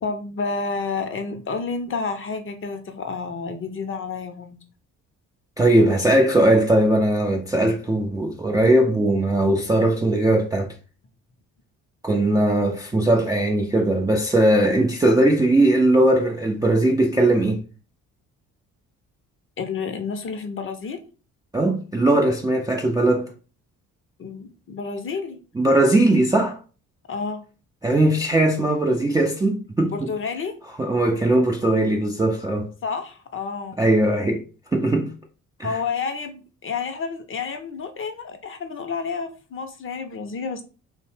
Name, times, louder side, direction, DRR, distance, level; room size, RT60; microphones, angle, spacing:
voice 1, 0.0-4.6 19.6-21.0 24.2-25.4 27.1-27.4 29.9-30.5 32.8-33.9 35.6-40.6, left 5 dB, 30° left, 0.6 m, -30 dB
voice 2, 5.6-10.7 12.0-17.6 21.5-23.3 25.6-26.6 27.8-30.1 30.8-32.7 33.8-34.4 34.7-35.1 35.6-35.8, right 1 dB, 10° right, 0.3 m, -19 dB
2.6 x 2.0 x 3.1 m
hypercardioid pair, 50°, 41 cm